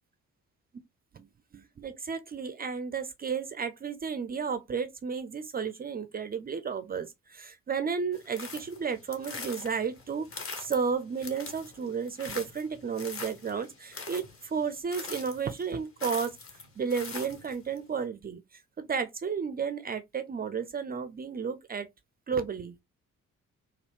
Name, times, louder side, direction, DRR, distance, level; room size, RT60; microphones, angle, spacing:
voice 1, 1.1-16.4 16.8-21.9 22.3-22.8, right 6 dB, 25° right, 0.4 m, -33 dB
sound 1, 8.1-17.8, left 4 dB, 30° left, 1.0 m, -43 dB
3.1 x 2.3 x 3.1 m
figure-of-eight pair, 40°, 41 cm